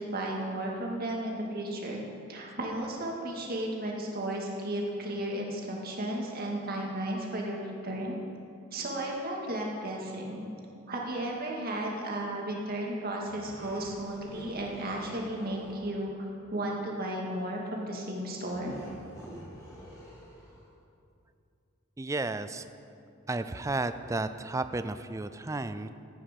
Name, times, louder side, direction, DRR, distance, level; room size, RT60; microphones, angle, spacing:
voice 1, 0.0-2.0 2.3-8.2 8.7-10.4 10.9-18.8, right 1 dB, 45° right, -1 dB, 2.0 m, -34 dB
sound 1, 13.2-15.9 18.5-20.8, equal, 15° left, 2.4 m, -48 dB
voice 2, 22.0-22.7 23.3-25.9, right 2 dB, 15° right, 11 dB, 0.4 m, -33 dB
14.0 x 9.2 x 5.3 m, 2.5 s
head